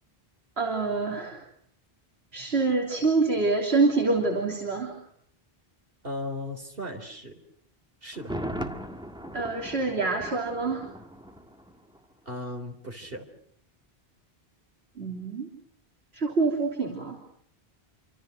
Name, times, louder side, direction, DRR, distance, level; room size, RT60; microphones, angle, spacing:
voice 1, 0.6-1.4 2.3-5.0 9.3-10.9 15.0-15.5 16.1-17.2, right 3 dB, 90° right, 1 dB, 3.5 m, -26 dB
voice 2, 6.0-7.4 8.0-8.4 12.3-13.3, left 1 dB, 65° right, 6 dB, 3.8 m, -36 dB
Thunder, 8.1-12.0 12.3-12.4, equal, 5° right, 1.8 m, -38 dB
27.5 x 26.0 x 6.5 m, 0.67 s
omnidirectional pair, 1.0 m